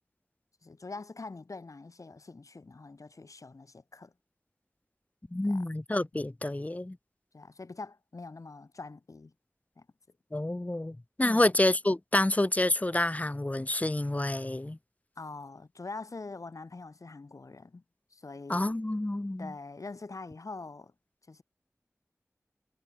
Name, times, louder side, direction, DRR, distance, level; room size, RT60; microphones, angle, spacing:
voice 1, 0.6-4.1 5.4-5.6 7.3-9.3 9.8-9.9 11.2-11.5 15.2-17.8 18.1-18.7 19.4-20.9 21.3-21.4, left 3 dB, 85° left, 5.1 m, -44 dB
voice 2, 5.3-7.0 10.3-14.8 18.5-19.5, left 1 dB, 25° left, 1.2 m, -28 dB
wide cardioid pair, 60°, 5 cm